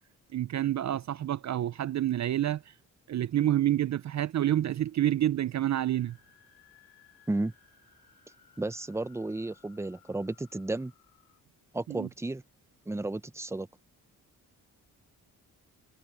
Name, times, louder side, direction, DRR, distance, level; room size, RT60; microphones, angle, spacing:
voice 1, 0.3-2.7 3.1-6.2 11.9-12.1, right 12 dB, 50° right, 0.5 m, -28 dB
sound 1, 5.9-11.4, left 8 dB, 80° left, 3.1 m, -62 dB
voice 2, 8.6-10.9 11.7-12.4 12.9-13.7, right 2 dB, 10° right, 0.8 m, -33 dB
cardioid pair, 85°, 36 cm